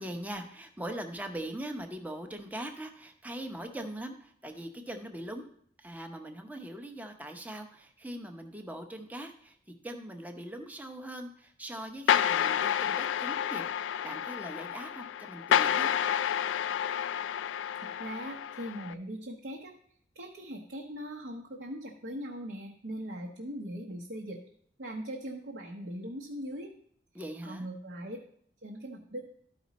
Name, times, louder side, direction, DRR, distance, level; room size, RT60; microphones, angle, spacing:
voice 1, 0.0-5.5 5.8-9.6 9.8-13.7 14.0-15.9 27.1-27.7, right 1 dB, 10° right, 5 dB, 0.7 m, -41 dB
sound 1, 12.1-18.9, left 9 dB, 85° left, 0.3 m, -29 dB
voice 2, 17.8-19.7 20.1-24.4 24.8-26.7 27.4-28.2 28.6-29.2, equal, 65° right, 0 dB, 0.9 m, -40 dB
12.5 x 5.2 x 4.1 m, 0.62 s
head